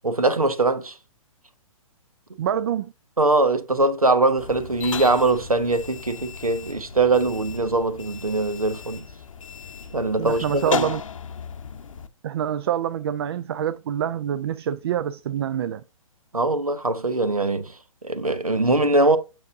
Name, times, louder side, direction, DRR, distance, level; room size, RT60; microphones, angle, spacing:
voice 1, 0.0-1.0 3.2-9.0 9.9-10.9 16.3-17.7 18.0-19.2, right 2 dB, 90° right, 0.9 m, -22 dB
voice 2, 2.4-2.9 10.2-11.0 12.2-15.8, right 9 dB, 45° right, 0.4 m, -26 dB
sound 1, 4.4-12.1, left 6 dB, 65° left, 0.7 m, -35 dB
7.1 x 5.5 x 2.6 m
figure-of-eight pair, 120°, 18 cm